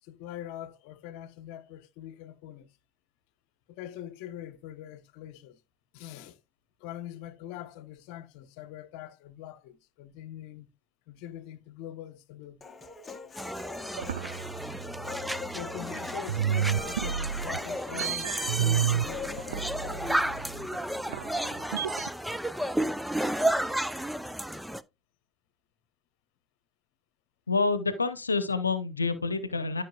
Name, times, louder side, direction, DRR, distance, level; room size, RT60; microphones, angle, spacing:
voice 1, 0.0-2.7 3.7-5.6 5.9-6.4 6.8-10.7 11.1-12.8 15.5-20.7, left 12 dB, 55° left, 0.9 m, -43 dB
Human voice, 12.6-20.6, left 5 dB, 20° left, 0.9 m, -44 dB
sound 1, 13.4-24.8, right 1 dB, ahead, 0.5 m, -32 dB
sound 2, 14.0-15.9 16.3-22.1, right 9 dB, 70° right, 0.3 m, -31 dB
voice 2, 27.5-29.8, left 4 dB, 85° left, 0.8 m, -28 dB
13.0 x 5.6 x 2.3 m
figure-of-eight pair, 70°, 0 cm